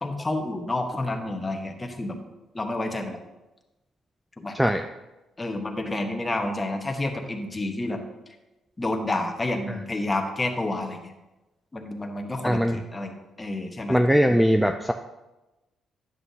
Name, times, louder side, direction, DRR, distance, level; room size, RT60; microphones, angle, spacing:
voice 1, 0.0-2.2 2.5-3.2 4.4-4.6 5.4-8.0 8.8-11.0 11.7-14.0, left 2 dB, 20° left, 4 dB, 1.0 m, -29 dB
voice 2, 4.5-4.8 12.4-12.8 13.9-14.9, equal, 5° right, 6 dB, 0.3 m, -20 dB
9.7 x 7.8 x 2.8 m, 1.0 s
cardioid pair, 90°, 0 cm